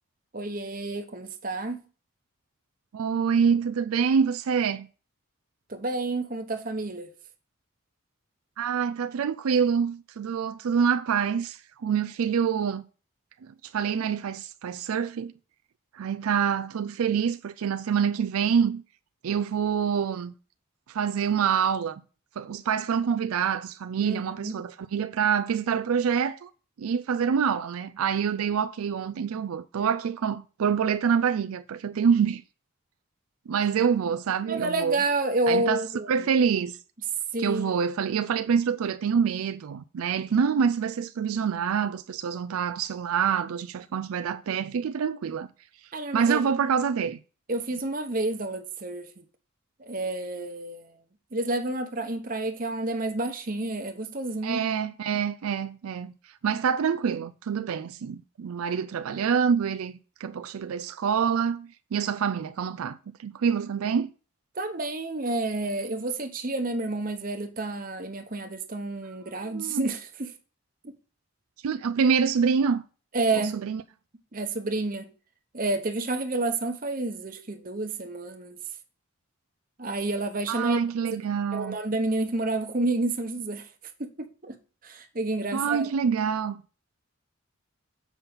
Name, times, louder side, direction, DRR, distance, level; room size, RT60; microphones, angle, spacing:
voice 1, 0.3-1.8 5.7-7.1 24.0-24.6 34.5-36.3 37.3-37.8 45.9-46.5 47.5-49.2 49.8-50.9 51.3-54.6 64.6-70.3 70.8-70.9 73.1-73.6 74.3-75.1 75.5-78.6 79.8-80.8 81.5-83.7 84.0-84.6 84.8-85.9, right 2 dB, 40° right, 0.9 m, -30 dB
voice 2, 2.9-4.9 8.6-12.8 13.6-15.3 15.9-18.8 19.2-20.3 20.9-22.0 22.4-26.5 26.8-32.4 33.5-35.0 35.5-35.8 36.1-36.8 37.4-45.5 46.1-47.2 54.4-56.1 56.4-64.1 69.5-69.9 71.6-72.8 73.3-73.8 80.5-81.8 85.5-86.6, right 7 dB, 85° right, 0.4 m, -26 dB
7.3 x 5.5 x 3.6 m
head